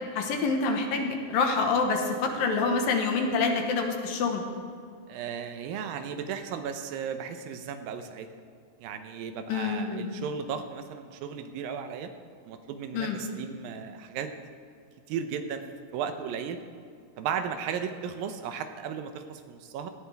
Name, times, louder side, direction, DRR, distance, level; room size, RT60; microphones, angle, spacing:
voice 1, 0.1-4.4 9.5-10.1 12.9-13.2, left 4 dB, 85° left, 3 dB, 3.1 m, -27 dB
voice 2, 5.1-8.3 8.8-12.1 12.4-14.3 15.1-15.6 15.9-16.6 17.2-19.9, right 7 dB, 85° right, 8 dB, 2.7 m, -35 dB
17.5 x 14.5 x 3.5 m, 2.3 s
omnidirectional pair, 4.0 m